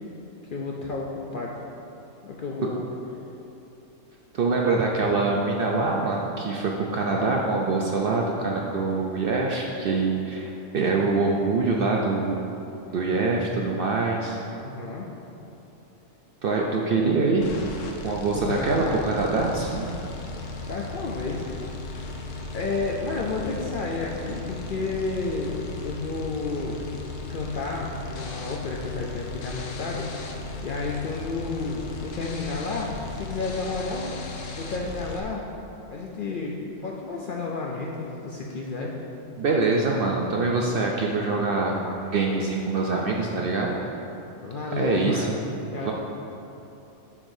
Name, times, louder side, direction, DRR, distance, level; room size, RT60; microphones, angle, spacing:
voice 1, 0.5-1.6 2.2-2.9 7.1-7.4 14.5-15.0 17.0-17.2 18.3-19.1 20.7-21.5 21.8-22.1 22.5-26.8 27.3-30.1 30.6-34.1 34.6-35.4 35.9-38.9 44.4-45.9, left 3 dB, 60° left, -2 dB, 0.5 m, -31 dB
voice 2, 4.3-12.4 12.9-14.4 16.4-17.5 18.0-19.9 39.4-43.8 44.8-45.3 45.7-45.9, right 3 dB, 65° right, -1 dB, 0.6 m, -24 dB
sound 1, 17.4-35.2, left 2 dB, 75° left, 1.0 m, -36 dB
7.2 x 6.4 x 2.6 m, 2.9 s
omnidirectional pair, 1.3 m